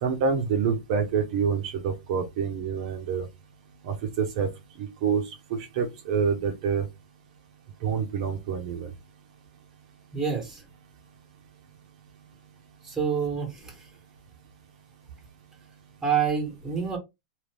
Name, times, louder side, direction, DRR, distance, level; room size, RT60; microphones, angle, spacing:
voice 1, 0.0-3.3 3.8-4.5 4.8-6.8 7.8-8.9, right 6 dB, 50° right, 0.8 m, -27 dB
voice 2, 10.1-10.6 12.8-13.9 16.0-17.0, right 6 dB, 10° right, 1.3 m, -27 dB
2.7 x 2.5 x 3.3 m
supercardioid pair, 145°, 5 cm